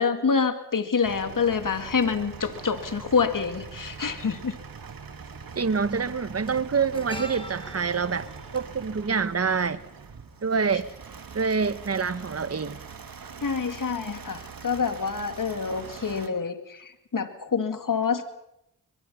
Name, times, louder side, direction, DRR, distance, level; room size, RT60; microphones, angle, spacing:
voice 1, 0.0-4.6 13.4-18.2, left 5 dB, 55° left, 8 dB, 2.4 m, -27 dB
sound 1, 1.0-16.3, right 5 dB, 60° right, 2.1 m, -43 dB
sound 2, 4.0-4.1 5.3-5.5 5.8-10.1 10.4-10.6, equal, 15° left, 4.2 m, -44 dB
voice 2, 5.5-8.3 8.5-9.8 10.4-10.9 11.3-12.8, right 5 dB, 40° right, 13 dB, 1.3 m, -26 dB
23.5 x 22.0 x 5.7 m, 0.82 s
cardioid pair, 40°, 38 cm